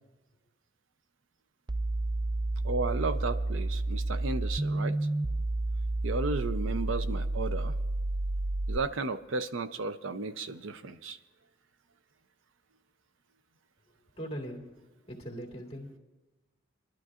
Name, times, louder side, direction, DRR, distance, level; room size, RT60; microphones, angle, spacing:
sound 1, 1.7-8.8, right 2 dB, 25° right, 0.4 m, -30 dB
voice 1, 2.6-5.0 6.0-7.7 8.7-11.2, right 3 dB, 90° right, 10 dB, 0.6 m, -34 dB
voice 2, 14.2-14.7 15.1-16.0, equal, 35° left, 0 dB, 2.0 m, -40 dB
26.0 x 12.0 x 2.5 m, 1.2 s
head